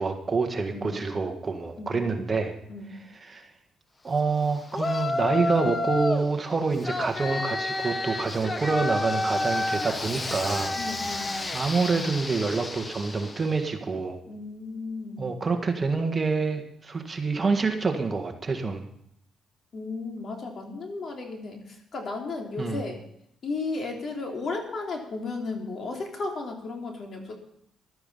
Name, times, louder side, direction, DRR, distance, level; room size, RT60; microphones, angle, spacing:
voice 1, 0.0-2.5 2.9-3.5 4.0-10.8 11.2-14.2 15.2-18.8 22.6-22.8, right 4 dB, 30° right, 5 dB, 1.6 m, -27 dB
voice 2, 1.8-2.2 2.7-2.9 10.8-11.4 14.3-15.4 19.7-21.6 21.9-23.0 23.4-27.4, left 3 dB, 50° left, 1 dB, 3.3 m, -34 dB
Yell, 4.7-6.3 6.8-13.6, left 2 dB, 25° left, 1.0 m, -30 dB
14.5 x 12.0 x 5.6 m, 0.73 s
cardioid pair, 110°, 0 cm